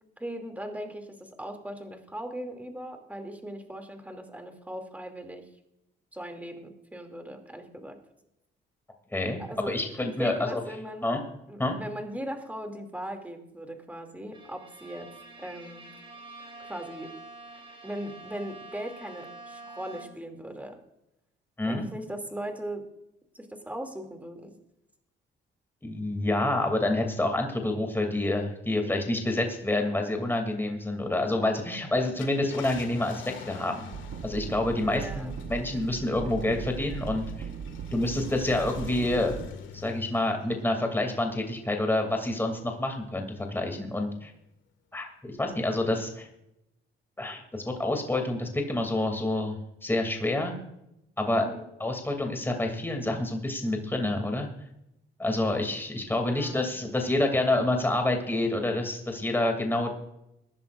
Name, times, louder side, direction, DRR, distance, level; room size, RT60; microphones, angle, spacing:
voice 1, 0.2-5.4 6.1-8.0 9.4-9.8 10.2-11.1 11.5-15.1 15.4-15.8 16.6-17.1 17.8-20.8 21.6-22.8 23.3-24.6 34.9-35.3 51.3-51.6 56.2-56.7, right 1 dB, 10° right, 5 dB, 2.6 m, -38 dB
voice 2, 9.7-10.6 11.0-11.2 11.6-11.8 21.6-21.9 25.8-33.9 34.2-37.2 37.9-39.4 39.7-44.3 44.9-46.3 47.2-49.6 49.8-50.6 51.2-51.5 51.8-54.5 55.2-59.9, left 2 dB, 10° left, 4 dB, 2.6 m, -28 dB
Bowed string instrument, 14.3-20.4, right 3 dB, 25° right, 3.3 m, -47 dB
Car, 32.0-42.9 43.4-43.5 45.5-45.7, left 5 dB, 75° left, 1.8 m, -47 dB
sound 1, 33.9-39.5, right 7 dB, 55° right, 0.7 m, -38 dB
22.0 x 11.0 x 2.5 m, 0.84 s
cardioid pair, 90°, 20 cm